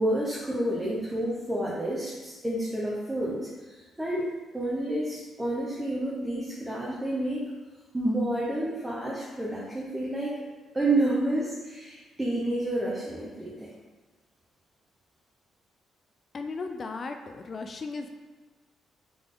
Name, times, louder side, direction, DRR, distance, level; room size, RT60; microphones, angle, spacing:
voice 1, 0.0-7.5 7.9-10.3 10.7-13.7, right 1 dB, 15° right, -6 dB, 0.9 m, -29 dB
voice 2, 16.3-18.1, left 4 dB, 40° left, 5 dB, 0.3 m, -36 dB
3.9 x 3.4 x 3.8 m, 1.3 s
cardioid pair, 90°, 0 cm